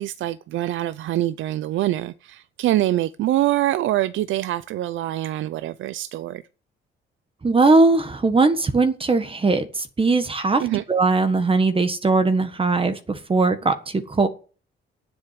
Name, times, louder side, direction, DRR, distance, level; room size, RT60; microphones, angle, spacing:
voice 1, 0.0-6.4 10.6-10.8, right 14 dB, 75° right, 0.6 m, -24 dB
voice 2, 7.4-10.6 10.9-14.3, right 3 dB, 25° right, 1.5 m, -19 dB
9.4 x 8.0 x 9.3 m
cardioid pair, 90°, 20 cm